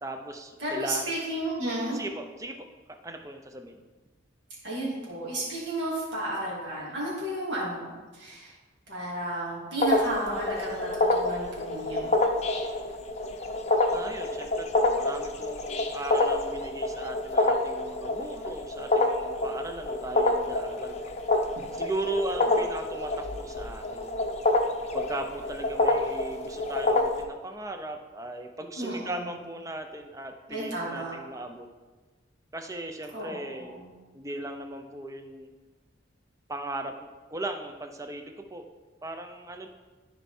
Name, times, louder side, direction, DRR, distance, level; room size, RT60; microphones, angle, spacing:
voice 1, 0.0-1.1 1.9-2.6 3.0-3.8 13.9-21.0 21.7-24.2 24.9-31.7 32.5-33.8 34.1-35.5 36.5-38.6 39.0-39.7, right 1 dB, 15° right, 5 dB, 0.6 m, -37 dB
voice 2, 0.6-2.0 4.6-8.5 8.9-12.2 28.8-29.2 30.5-31.2 33.1-33.9, right 1 dB, 60° right, -7 dB, 3.1 m, -33 dB
sound 1, 9.8-27.2, left 2 dB, 35° left, 0.7 m, -27 dB
13.5 x 4.6 x 4.3 m, 1.3 s
head